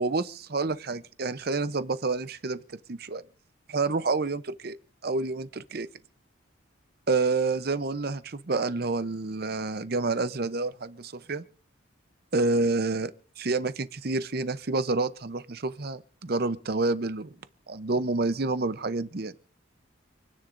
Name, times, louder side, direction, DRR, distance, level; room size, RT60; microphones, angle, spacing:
voice 1, 0.0-2.6 2.9-3.2 3.7-4.8 5.0-5.9 7.1-11.4 12.3-13.1 13.4-17.3 17.7-19.3, right 3 dB, 50° right, 0.7 m, -28 dB
28.0 x 9.9 x 2.6 m
head